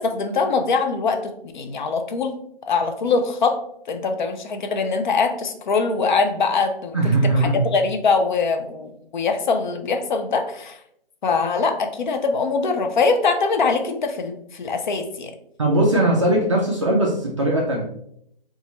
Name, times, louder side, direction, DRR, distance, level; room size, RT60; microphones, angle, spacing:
voice 1, 0.0-2.3 2.7-3.6 3.9-7.0 7.4-10.8 11.2-15.3, left 4 dB, 50° left, 6 dB, 0.5 m, -22 dB
voice 2, 6.9-7.6 15.6-17.8, right 1 dB, 35° right, -2 dB, 0.4 m, -19 dB
4.1 x 2.4 x 2.8 m, 0.72 s
hypercardioid pair, 155°, 30 cm